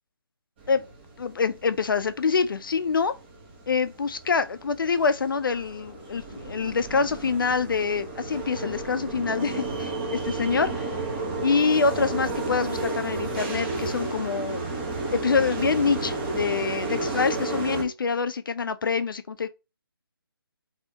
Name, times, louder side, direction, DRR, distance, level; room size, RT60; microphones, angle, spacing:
sound 1, 0.6-17.8, right 2 dB, 25° right, 0.8 m, -32 dB
voice 1, 1.2-3.1 3.7-10.9 11.4-14.6 15.1-19.5, left 5 dB, 60° left, 0.4 m, -26 dB
3.3 x 2.7 x 2.8 m
figure-of-eight pair, 150°, 13 cm